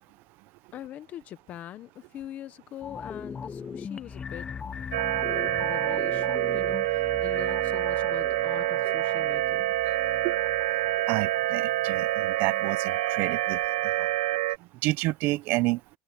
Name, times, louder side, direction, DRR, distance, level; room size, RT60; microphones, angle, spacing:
voice 1, 0.7-4.5 5.3-9.7, left 12 dB, 40° left, 1.2 m, -42 dB
sound 1, 2.8-12.1 12.5-12.6, left 6 dB, 20° left, 0.7 m, -40 dB
sound 2, 4.9-14.6, right 16 dB, 85° right, 1.0 m, -27 dB
voice 2, 11.1-13.6 14.0-14.1 14.8-15.8, right 20 dB, 55° right, 0.7 m, -29 dB
supercardioid pair, 135°, 4 cm